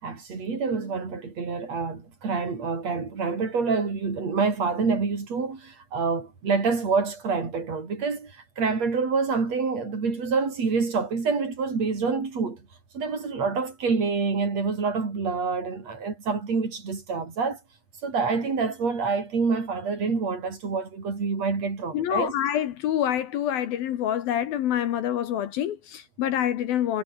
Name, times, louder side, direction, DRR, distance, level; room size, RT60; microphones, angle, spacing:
voice 1, 0.0-12.6 12.9-17.6 18.0-22.3, right 4 dB, 35° right, 5.7 m, -27 dB
voice 2, 21.9-27.0, left 10 dB, 65° left, 2.6 m, -26 dB
omnidirectional pair, 5.7 m